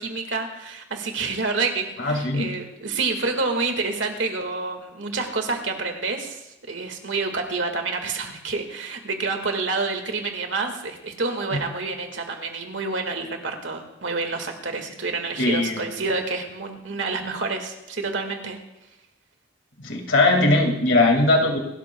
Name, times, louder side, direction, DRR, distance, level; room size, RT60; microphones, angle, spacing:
voice 1, 0.0-18.6, right 3 dB, 75° right, 4 dB, 1.8 m, -28 dB
voice 2, 2.0-2.5 11.5-11.6 15.4-15.9 19.8-21.6, left 2 dB, 70° left, 2 dB, 2.1 m, -20 dB
26.5 x 12.5 x 2.3 m, 0.95 s
head